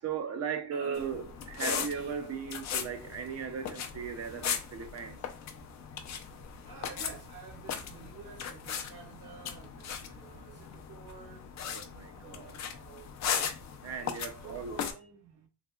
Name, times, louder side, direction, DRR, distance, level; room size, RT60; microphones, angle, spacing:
voice 1, 0.0-5.2 11.6-12.5 13.8-14.8, right 6 dB, 40° right, 0.5 m, -37 dB
voice 2, 0.7-1.1 1.9-2.1 6.6-11.4 12.1-13.1 14.4-15.5, right 5 dB, 85° right, 1.7 m, -49 dB
sound 1, 1.0-14.9, left 7 dB, 45° left, 0.5 m, -38 dB
3.4 x 2.7 x 2.3 m
cardioid pair, 110°, 40 cm